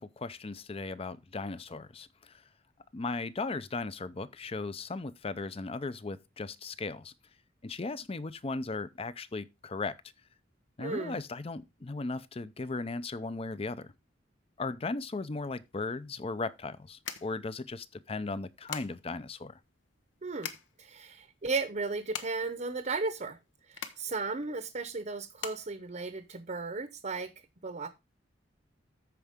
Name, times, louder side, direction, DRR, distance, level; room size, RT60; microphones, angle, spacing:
voice 1, 0.0-2.3 2.9-7.1 7.6-10.0 10.8-13.9 14.6-19.6, left 3 dB, 30° left, 0.5 m, -37 dB
voice 2, 10.8-11.2 20.2-20.5 20.8-23.4 23.8-27.3 27.6-27.9, right 3 dB, 40° right, 0.8 m, -35 dB
sound 1, 15.6-26.8, left 7 dB, 80° left, 0.9 m, -45 dB
13.5 x 4.8 x 3.6 m
head